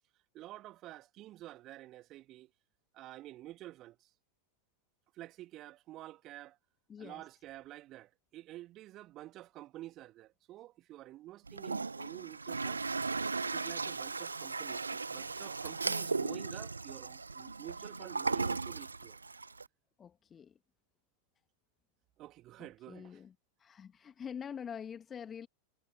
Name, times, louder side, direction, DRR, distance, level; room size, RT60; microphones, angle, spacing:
voice 1, 0.3-2.5 2.9-4.0 5.2-6.6 7.0-12.8 13.4-19.2 22.2-23.2, right 15 dB, 35° right, 2.5 m, -49 dB
voice 2, 6.9-7.3 20.0-20.5 22.6-23.3 23.6-25.5, left 7 dB, 20° left, 1.5 m, -45 dB
Toilet flush, 11.5-19.6, right 4 dB, 80° right, 0.6 m, -37 dB
figure-of-eight pair, 90°, 0 cm